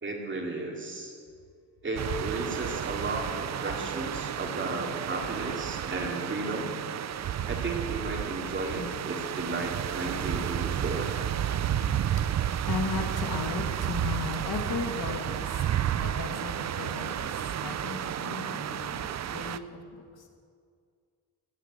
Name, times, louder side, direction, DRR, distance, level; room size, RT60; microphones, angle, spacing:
voice 1, 0.0-1.1 1.8-6.8 7.5-11.2, right 2 dB, 30° right, 0 dB, 2.6 m, -34 dB
sound 1, 2.0-19.6, right 10 dB, 45° right, 0.4 m, -32 dB
voice 2, 12.3-15.6 16.0-17.3 17.6-20.2, left 5 dB, 70° left, 3 dB, 2.1 m, -36 dB
16.5 x 9.9 x 8.2 m, 2.2 s
wide cardioid pair, 170°, 39 cm